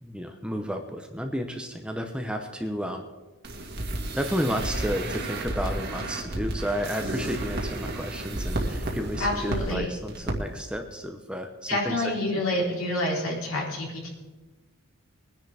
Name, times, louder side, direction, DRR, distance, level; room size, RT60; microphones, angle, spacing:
voice 1, 0.0-3.0 4.1-12.0, equal, 5° right, 4 dB, 0.9 m, -32 dB
sound 1, 3.4-9.8 10.1-10.3 10.6-10.7, right 1 dB, 50° right, 2.1 m, -32 dB
voice 2, 9.2-9.9 11.7-14.1, left 1 dB, 65° left, -3 dB, 4.1 m, -28 dB
22.0 x 10.5 x 3.5 m, 1.2 s
head